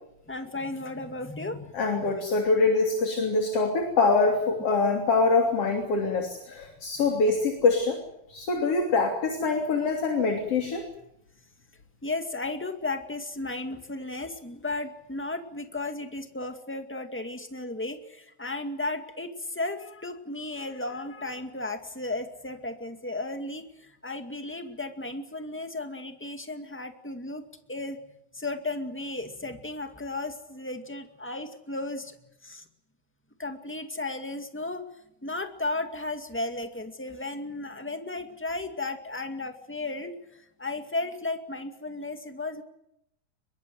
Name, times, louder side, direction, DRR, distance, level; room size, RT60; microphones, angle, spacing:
voice 1, 0.3-1.7 2.0-2.2 12.0-23.7 24.0-28.0 28.3-32.1 32.4-32.6 33.4-34.8 35.2-40.2 40.6-42.6, left 2 dB, 5° left, 6 dB, 1.4 m, -34 dB
voice 2, 1.7-8.0 8.3-10.8, left 3 dB, 50° left, 3 dB, 3.9 m, -24 dB
23.5 x 22.5 x 9.4 m, 0.80 s
omnidirectional pair, 3.6 m